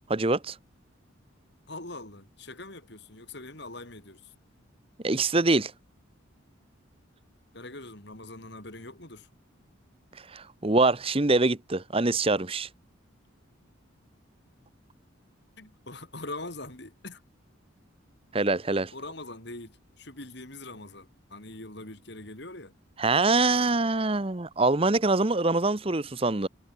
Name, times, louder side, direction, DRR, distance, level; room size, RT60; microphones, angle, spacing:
voice 1, 0.1-0.6 5.0-5.7 10.3-12.7 18.3-18.9 23.0-26.5, right 3 dB, 25° right, 0.9 m, -24 dB
voice 2, 1.7-4.3 7.5-9.3 15.6-17.2 18.9-22.7, left 2 dB, 55° left, 3.9 m, -42 dB
head